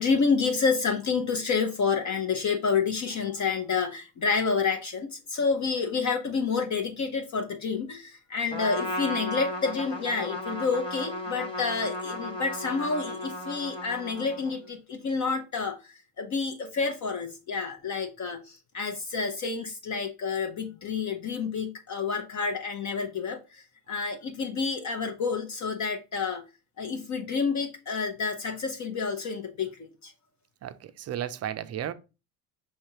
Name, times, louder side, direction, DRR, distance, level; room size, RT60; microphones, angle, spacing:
voice 1, 0.0-26.4 26.8-30.1, left 5 dB, 40° left, 0.7 m, -29 dB
Trumpet, 8.5-14.7, left 1 dB, 10° left, 1.3 m, -35 dB
voice 2, 30.6-31.9, right 10 dB, 35° right, 0.5 m, -34 dB
5.6 x 3.2 x 2.9 m
hypercardioid pair, 70°, 47 cm